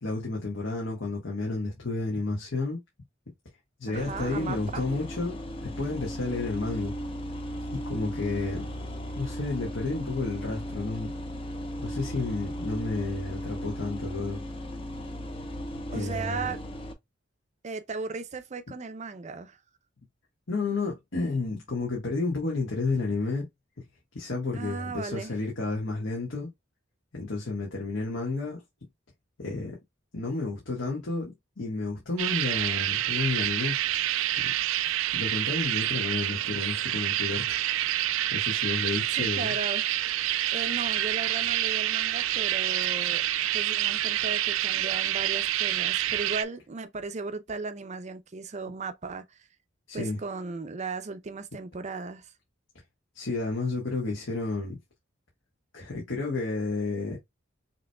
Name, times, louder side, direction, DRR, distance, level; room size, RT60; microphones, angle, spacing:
voice 1, 0.0-2.8 3.8-5.4 5.6-6.9 7.7-8.7 9.2-11.1 11.8-14.4 15.9-16.5 20.5-23.5 24.1-26.5 27.1-28.6 29.4-29.8 30.1-33.8 34.4-34.5 35.1-37.6 38.3-39.5 49.9-50.2 53.1-54.8 55.7-57.2, left 3 dB, 70° left, 1.5 m, -31 dB
sound 1, 3.9-16.9, equal, 30° left, 0.8 m, -36 dB
voice 2, 3.9-4.8 15.9-16.6 17.6-19.6 24.5-25.3 39.1-39.9 40.5-43.2 43.5-49.4 49.9-52.3, right 4 dB, 35° right, 0.5 m, -36 dB
sound 2, 32.2-46.4, right 13 dB, 85° right, 0.4 m, -28 dB
5.9 x 3.0 x 2.3 m
head